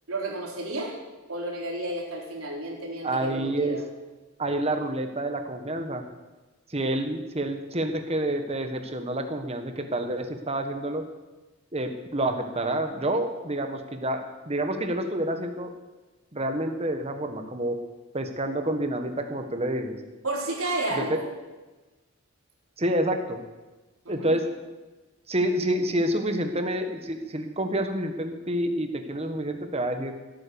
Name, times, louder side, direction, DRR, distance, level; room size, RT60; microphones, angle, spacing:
voice 1, 0.1-0.9 1.3-3.8 20.2-21.3 24.1-24.4, right 2 dB, 80° right, -2 dB, 3.8 m, -32 dB
voice 2, 3.0-3.8 4.4-6.1 6.7-11.0 11.7-15.7 16.3-17.8 18.1-20.0 21.0-21.2 22.8-23.4 24.1-24.4 25.3-30.1, right 1 dB, 30° right, 6 dB, 1.4 m, -28 dB
16.5 x 9.1 x 7.1 m, 1.2 s
head